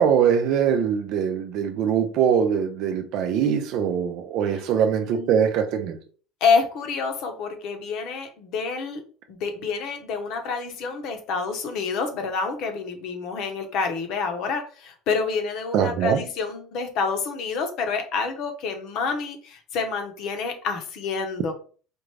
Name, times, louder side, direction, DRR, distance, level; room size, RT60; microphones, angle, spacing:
voice 1, 0.0-6.0 15.7-16.2, right 8 dB, 55° right, 0.6 m, -22 dB
voice 2, 5.0-5.3 6.4-9.0 9.3-21.5, left 5 dB, 50° left, 0.9 m, -28 dB
4.4 x 2.5 x 3.2 m
cardioid pair, 155°, 0 cm